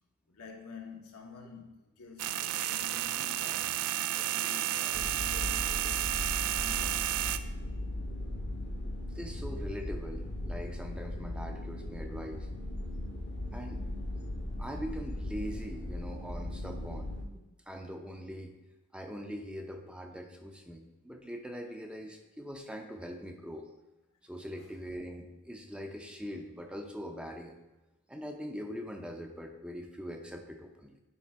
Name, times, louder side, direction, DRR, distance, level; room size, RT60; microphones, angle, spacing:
voice 1, 0.3-6.1 6.5-7.4 24.6-24.7, left 5 dB, 85° left, 1.2 m, -49 dB
sound 1, 2.2-7.4, right 13 dB, 85° right, 0.4 m, -32 dB
sound 2, 4.9-17.2, left 1 dB, 50° left, 0.8 m, -38 dB
voice 2, 9.1-12.5 13.5-13.9 14.6-18.5 18.9-23.7 24.2-27.6 28.1-31.0, equal, 5° right, 0.5 m, -42 dB
9.3 x 3.4 x 4.6 m
head